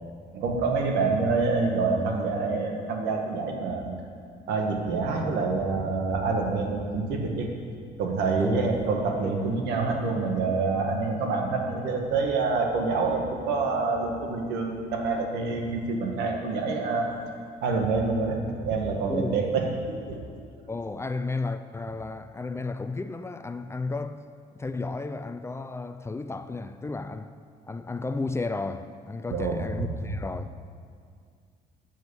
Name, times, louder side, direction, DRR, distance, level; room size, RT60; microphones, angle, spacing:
voice 1, 0.3-4.0 4.5-7.5 8.0-17.2 17.6-20.2 29.3-30.1, right 3 dB, 85° right, 1.7 m, -27 dB
voice 2, 19.1-19.4 20.7-24.2 24.5-27.3 27.7-30.5, left 3 dB, 15° left, 0.4 m, -33 dB
12.5 x 6.3 x 7.0 m
cardioid pair, 110°, 17 cm